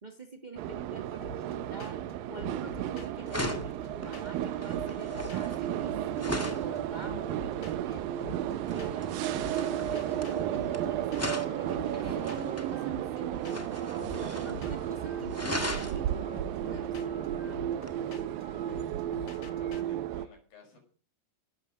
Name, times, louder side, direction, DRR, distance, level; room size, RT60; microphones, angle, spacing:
voice 1, 0.0-9.5 9.9-13.7 14.1-16.4 16.6-17.2, right 2 dB, 75° right, 4 dB, 0.4 m, -46 dB
sound 1, 0.6-20.3, right 11 dB, 90° right, 2.7 m, -33 dB
sound 2, 1.2-1.5 1.8-2.1 2.4-4.4 4.7-6.2 6.5-6.8 7.0-9.1 9.4-19.8, left 3 dB, 40° left, 1.7 m, -48 dB
sound 3, 2.7-2.9 3.3-6.7 8.7-10.8 11.1-12.7 13.4-14.6 14.9-15.0 15.3-16.0 17.8-18.0, left 1 dB, 10° left, 0.8 m, -38 dB
voice 2, 18.6-20.8, left 3 dB, 85° left, 2 dB, 7.6 m, -58 dB
17.5 x 12.5 x 5.3 m, 0.40 s
omnidirectional pair, 4.0 m